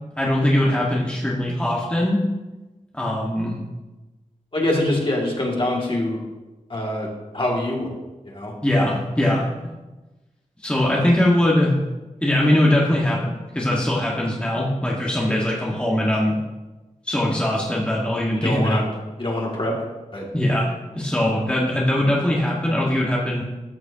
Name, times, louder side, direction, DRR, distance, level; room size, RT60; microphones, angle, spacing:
voice 1, 0.2-2.2 2.9-3.5 8.6-9.4 10.6-11.8 12.2-16.3 17.0-18.8 20.3-23.4, left 1 dB, 10° left, -4 dB, 1.6 m, -21 dB
voice 2, 4.5-6.2 6.7-7.1 7.3-7.9 8.3-8.9 18.4-18.8 19.2-19.8 20.1-20.3, left 1 dB, 40° left, -2 dB, 2.4 m, -24 dB
14.0 x 6.3 x 2.9 m, 1.1 s
cardioid pair, 55°, 14 cm